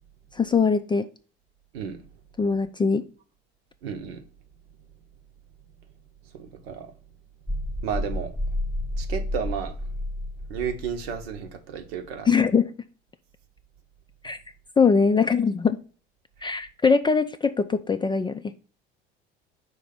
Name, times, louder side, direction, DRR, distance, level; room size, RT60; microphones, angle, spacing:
voice 1, 0.4-1.1 2.4-3.1 12.3-12.7 14.2-14.4 14.8-15.8 16.4-18.5, left 5 dB, 15° left, 0.3 m, -22 dB
voice 2, 3.8-4.2 6.3-6.9 7.8-8.3 9.0-9.8 10.5-12.3, right 7 dB, 70° right, 1.0 m, -32 dB
sound 1, 7.5-11.5, left 1 dB, ahead, 1.0 m, -31 dB
5.2 x 3.3 x 5.6 m
hypercardioid pair, 65°, 32 cm